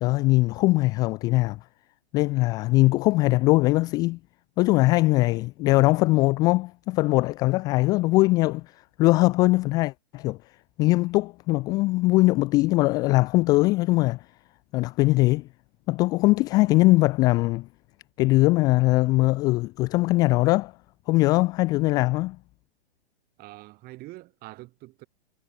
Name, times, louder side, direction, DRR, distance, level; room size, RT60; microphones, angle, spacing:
voice 1, 0.0-1.6 2.1-4.2 4.6-8.6 9.0-10.4 10.8-14.2 14.7-15.5 15.9-17.7 18.2-20.7 21.1-22.4, left 20 dB, 15° left, 0.3 m, -21 dB
voice 2, 23.4-25.1, right 19 dB, 30° right, 2.7 m, -44 dB
hypercardioid pair, 130°, 32 cm